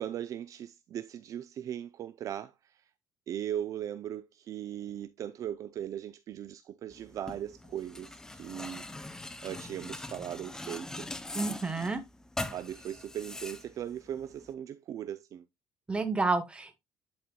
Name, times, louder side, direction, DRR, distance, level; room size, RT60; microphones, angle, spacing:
voice 1, 0.0-2.8 3.3-9.2 9.4-11.1 12.5-15.5, right 10 dB, 45° right, 0.4 m, -38 dB
sound 1, 6.9-14.5, left 2 dB, 10° left, 0.5 m, -42 dB
voice 2, 11.3-12.0 15.9-16.7, right 3 dB, 15° right, 1.1 m, -30 dB
11.0 x 4.3 x 2.2 m
cardioid pair, 125°, 8 cm